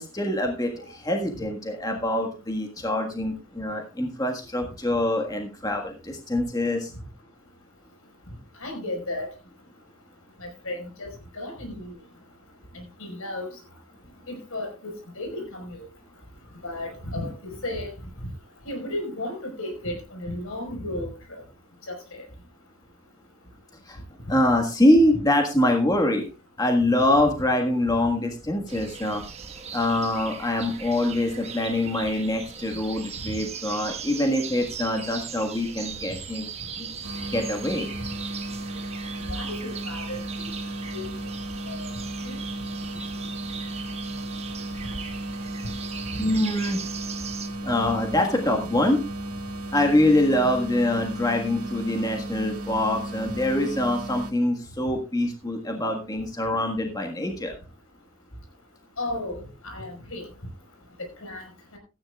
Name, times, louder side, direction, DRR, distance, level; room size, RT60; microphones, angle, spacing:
voice 1, 0.0-6.9 23.9-24.0 24.3-26.3 26.6-29.2 29.7-36.5 36.8-36.9 37.3-37.9 46.2-46.8 47.6-49.0 49.7-57.5, left 1 dB, 15° left, 2 dB, 1.5 m, -24 dB
voice 2, 8.6-9.3 10.4-11.1 11.3-11.9 12.7-13.5 14.3-15.9 16.6-17.9 18.6-21.1 21.9-22.0 25.1-25.2 39.3-40.5 40.9-41.1 41.7-41.9 42.2-42.4 46.2-46.3 59.0-60.2 61.2-61.4 61.7-61.8, left 1 dB, 75° left, 3 dB, 4.9 m, -34 dB
sound 1, 28.7-47.5, right 6 dB, 30° right, 1.3 m, -39 dB
sound 2, 37.0-54.3, right 1 dB, 90° right, 1.8 m, -35 dB
16.5 x 13.5 x 2.4 m, 0.30 s
head